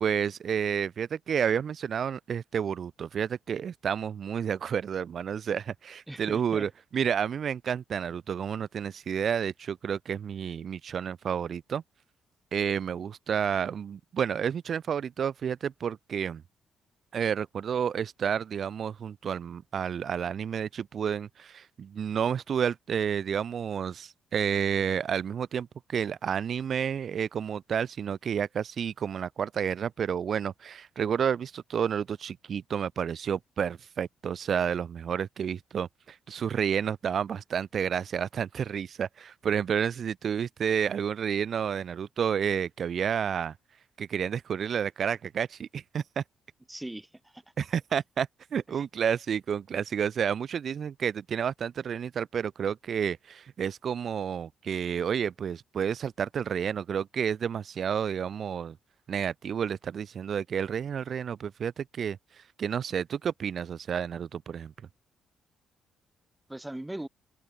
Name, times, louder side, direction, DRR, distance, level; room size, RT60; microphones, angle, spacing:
voice 1, 0.0-11.8 12.5-16.4 17.1-43.6 44.0-46.2 47.6-58.8 59.1-62.2 62.6-64.7, right 8 dB, 55° right, 0.5 m, -30 dB
voice 2, 6.1-6.7 46.7-47.4 66.5-67.1, right 1 dB, 10° right, 5.5 m, -39 dB
cardioid pair, 90°, 0 cm